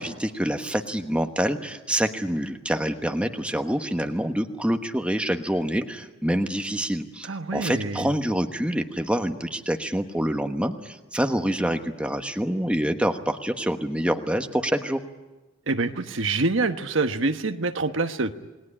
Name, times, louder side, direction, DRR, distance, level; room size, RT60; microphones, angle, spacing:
voice 1, 0.0-15.0, equal, 5° right, 6 dB, 1.2 m, -26 dB
voice 2, 7.2-8.1 15.7-18.3, right 3 dB, 60° right, 8 dB, 1.2 m, -26 dB
28.5 x 20.5 x 10.0 m, 1.1 s
head